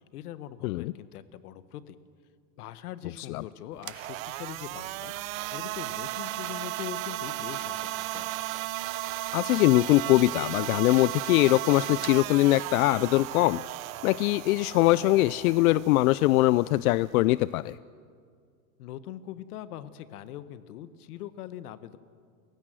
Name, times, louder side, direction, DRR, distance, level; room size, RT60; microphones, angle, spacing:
voice 1, 0.0-2.0 2.6-8.3 18.8-22.0, left 11 dB, 90° left, 14 dB, 1.4 m, -42 dB
sound 1, 3.7-17.8, right 16 dB, 65° right, 0.8 m, -35 dB
voice 2, 9.3-13.6 14.0-17.8, left 18 dB, 75° left, 18 dB, 0.5 m, -22 dB
29.0 x 16.5 x 7.7 m, 2.1 s
supercardioid pair, 170°, 44 cm